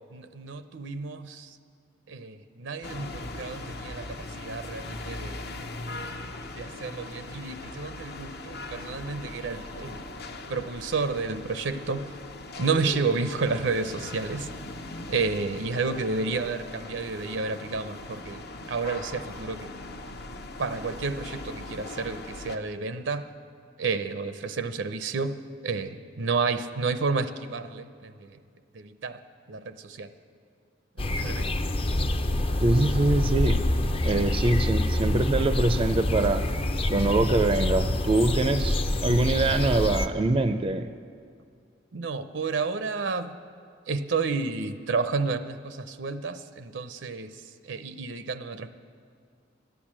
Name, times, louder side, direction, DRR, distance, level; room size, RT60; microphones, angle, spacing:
voice 1, 0.1-1.6 2.1-5.8 6.5-10.0 10.5-12.1 12.6-14.5 15.1-18.4 18.7-19.7 20.6-23.3 23.8-28.4 28.7-29.2 29.5-30.1 31.0-31.5 41.9-43.3 43.9-47.3 47.6-48.7, right 4 dB, 85° right, 11 dB, 0.7 m, -31 dB
sound 1, 2.8-22.6, left 2 dB, 60° left, 0.8 m, -40 dB
sound 2, 31.0-40.1, left 1 dB, 30° left, 0.5 m, -26 dB
voice 2, 32.6-33.6 34.0-36.4 36.9-40.9, right 2 dB, 30° right, 10 dB, 0.4 m, -24 dB
13.5 x 10.5 x 7.5 m, 2.3 s
head